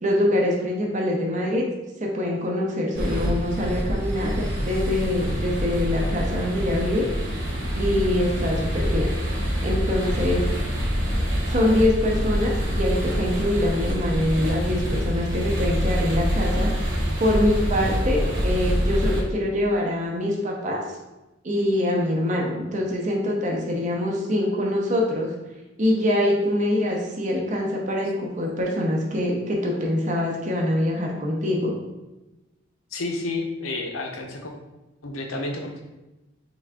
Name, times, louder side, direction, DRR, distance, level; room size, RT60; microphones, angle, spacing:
voice 1, 0.0-1.7 2.0-7.1 7.7-9.1 9.6-10.4 11.5-16.7 17.2-20.8 21.4-25.3 25.8-31.8, left 1 dB, 35° right, -1 dB, 0.7 m, -24 dB
sound 1, 2.9-19.2, equal, 70° right, 1.1 m, -25 dB
voice 2, 32.9-34.5 35.0-35.8, left 2 dB, 80° left, 3 dB, 0.7 m, -30 dB
3.8 x 3.3 x 3.6 m, 1.0 s
head